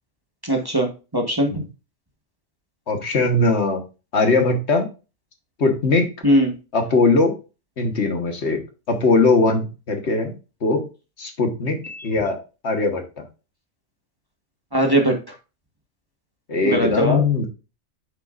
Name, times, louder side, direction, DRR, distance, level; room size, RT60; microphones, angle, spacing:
voice 1, 0.4-1.6 6.2-6.5 11.8-12.0 14.7-15.3 16.6-17.2, equal, 20° right, 2 dB, 1.3 m, -20 dB
voice 2, 2.9-3.8 4.1-4.9 5.6-6.1 6.7-7.3 7.8-8.6 8.9-10.3 10.6-10.8 11.2-11.8 12.0-12.4 12.6-13.2 16.5-17.5, left 3 dB, 65° left, 4 dB, 1.7 m, -20 dB
8.3 x 6.8 x 2.5 m, 0.31 s
omnidirectional pair, 1.2 m